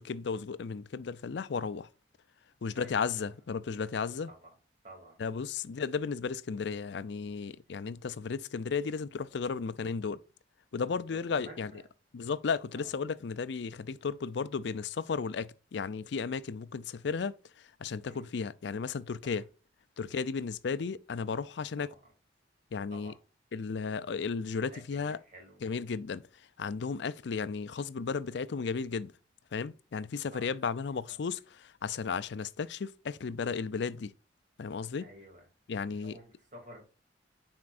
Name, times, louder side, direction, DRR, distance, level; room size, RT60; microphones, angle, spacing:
voice 1, 0.0-1.9 2.6-4.3 5.2-10.2 10.7-11.7 12.1-19.5 20.0-21.9 22.7-23.1 23.5-25.2 25.6-26.2 26.6-29.1 29.5-34.1 34.6-35.1 35.7-36.2, left 5 dB, 65° left, 0.4 m, -34 dB
voice 2, 2.7-3.3 4.3-4.5 4.8-5.2 10.9-11.8 12.7-12.9 18.1-18.3 19.3-19.4 21.8-22.0 22.9-23.2 24.6-25.6 30.3-30.5 31.1-31.2 35.0-35.4 35.7-36.8, right 1 dB, 45° right, 2.7 m, -52 dB
9.4 x 4.4 x 2.5 m
head